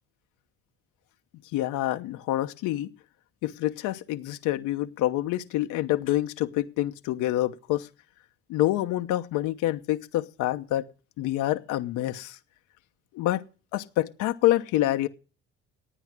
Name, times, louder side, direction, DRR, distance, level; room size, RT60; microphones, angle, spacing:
voice 1, 1.5-2.9 3.4-7.9 8.5-10.8 11.2-12.4 13.1-13.4 13.7-15.1, left 15 dB, 75° left, 8 dB, 1.0 m, -27 dB
13.0 x 9.1 x 6.1 m, 0.35 s
supercardioid pair, 75°, 31 cm